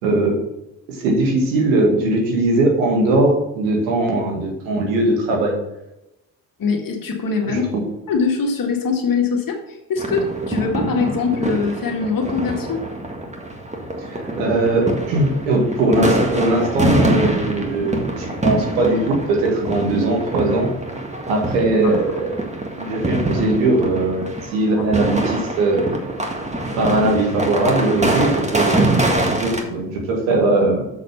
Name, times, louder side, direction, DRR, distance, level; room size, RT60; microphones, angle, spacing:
voice 1, 0.0-0.4 0.9-5.6 7.4-7.8 14.0-20.7 21.3-22.5 22.8-25.9 26.7-30.9, right 2 dB, 90° right, 1 dB, 1.8 m, -20 dB
voice 2, 6.6-7.6 8.1-12.9 21.8-21.9 24.8-24.9, left 5 dB, 55° left, 2 dB, 1.9 m, -22 dB
sound 1, 10.0-29.6, right 1 dB, 15° right, 1.8 m, -24 dB
6.8 x 6.3 x 5.8 m, 0.91 s
hypercardioid pair, 50°, 41 cm